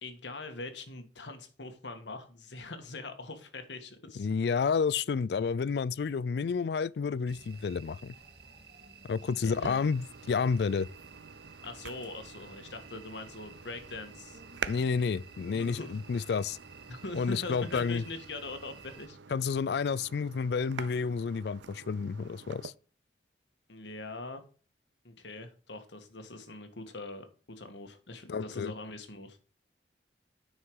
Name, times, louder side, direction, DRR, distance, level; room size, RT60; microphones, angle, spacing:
voice 1, 0.0-4.3 9.2-9.8 11.6-14.4 15.0-16.3 16.9-19.4 23.7-24.4 25.0-29.4, left 2 dB, 85° left, 1.6 m, -43 dB
voice 2, 4.2-8.1 9.1-10.9 14.7-16.6 17.1-18.0 19.3-22.7 28.3-28.7, left 5 dB, 65° left, 0.4 m, -30 dB
sound 1, 7.3-19.1, right 5 dB, 65° right, 2.5 m, -53 dB
sound 2, 9.5-22.7, right 6 dB, 85° right, 0.6 m, -47 dB
9.6 x 5.6 x 4.8 m
head